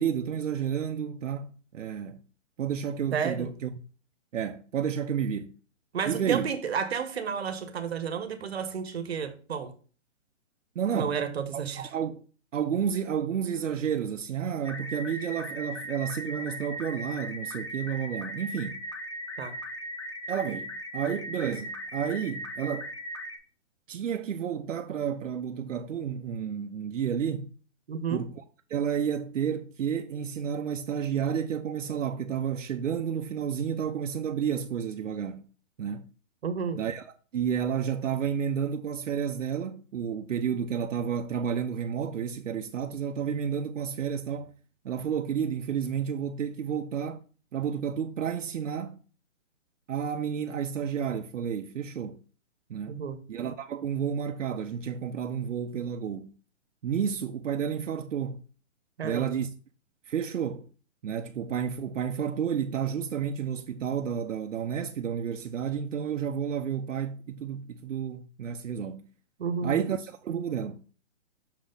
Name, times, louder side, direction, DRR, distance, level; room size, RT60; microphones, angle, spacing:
voice 1, 0.0-2.2 2.6-3.7 4.3-5.5 6.0-6.5 10.8-11.2 11.7-12.2 12.5-18.8 20.3-22.9 23.9-27.5 28.1-28.3 28.7-35.4 35.8-36.1 36.7-37.0 37.3-44.5 44.8-47.2 47.5-49.0 49.9-52.2 52.7-53.0 53.3-56.3 56.8-58.4 59.0-59.5 60.1-60.7 61.0-69.0 69.6-70.8, right 8 dB, 80° right, 0.7 m, -31 dB
voice 2, 3.1-3.5 5.9-9.7 10.9-11.9 19.4-19.6 27.9-28.2 36.4-36.8 52.9-53.2 59.0-59.4 69.4-69.8, right 6 dB, 55° right, 1.1 m, -31 dB
sound 1, 14.6-23.4, equal, 25° left, 0.6 m, -38 dB
6.3 x 4.1 x 3.9 m
hypercardioid pair, 175°, 37 cm